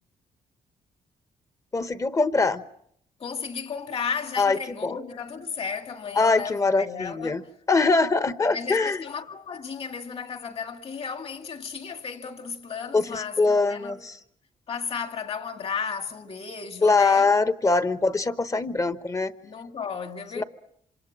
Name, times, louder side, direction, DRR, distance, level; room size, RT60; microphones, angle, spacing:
voice 1, 1.7-2.6 4.4-5.0 6.2-7.4 7.7-9.0 12.9-14.2 16.8-19.3 20.4-20.5, left 3 dB, 20° left, 1.1 m, -23 dB
voice 2, 3.2-7.4 8.5-14.0 14.7-17.3 19.4-20.4, left 6 dB, 40° left, 2.1 m, -34 dB
27.5 x 27.0 x 7.5 m
wide cardioid pair, 155°, 15 cm